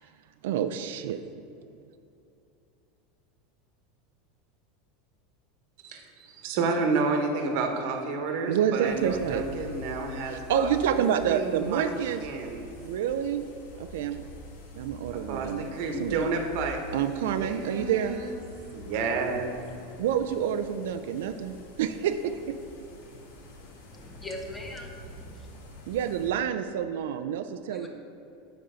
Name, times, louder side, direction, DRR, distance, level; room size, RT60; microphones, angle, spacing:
voice 1, 0.4-1.2 8.5-9.4 10.3-12.2 12.8-13.4 13.8-14.2 14.7-15.6 16.0-16.3 16.9-18.2 20.0-22.5 25.9-27.9, right 9 dB, 80° right, 8 dB, 0.4 m, -28 dB
voice 2, 5.8-11.9 12.2-12.7 15.1-16.8 17.2-18.4 18.7-19.6, right 4 dB, 55° right, 3 dB, 1.1 m, -30 dB
sound 1, 8.8-26.3, equal, 90° left, 1.4 m, -46 dB
voice 3, 23.9-25.5 27.7-27.9, left 1 dB, 10° left, 2 dB, 0.7 m, -41 dB
7.8 x 5.4 x 5.0 m, 2.7 s
supercardioid pair, 165°, 0 cm